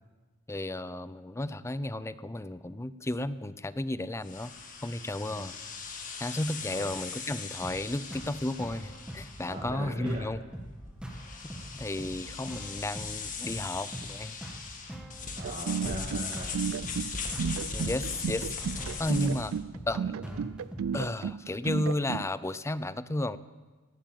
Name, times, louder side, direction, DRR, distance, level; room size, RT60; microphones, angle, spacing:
voice 1, 0.5-4.5 4.8-5.5 6.2-10.4 11.7-14.4 17.7-19.6 19.9-20.2 20.9-23.4, left 1 dB, 15° left, 15 dB, 0.5 m, -33 dB
sound 1, 4.2-19.6, left 4 dB, 40° left, 1.7 m, -40 dB
sound 2, 7.6-21.0, right 1 dB, 5° right, 1.5 m, -44 dB
voice 2, 9.4-10.3 15.4-16.7 20.2-20.5, right 1 dB, 40° right, -1 dB, 1.7 m, -40 dB
sound 3, 15.4-22.3, right 7 dB, 70° right, 0.4 m, -33 dB
18.0 x 8.9 x 7.6 m, 1.3 s
head